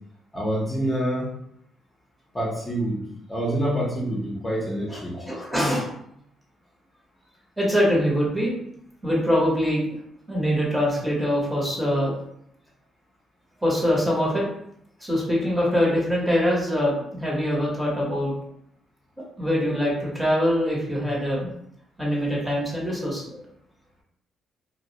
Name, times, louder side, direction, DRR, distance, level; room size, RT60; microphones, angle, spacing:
voice 1, 0.3-1.3 2.3-5.3, right 1 dB, 20° left, -5 dB, 0.7 m, -27 dB
voice 2, 5.2-5.9 7.6-8.5 9.0-9.8 10.3-12.1 13.6-14.4 15.0-18.3 19.4-21.5 22.0-23.4, equal, 5° right, -5 dB, 0.9 m, -23 dB
2.2 x 2.0 x 2.7 m, 0.72 s
cardioid pair, 90°, 0 cm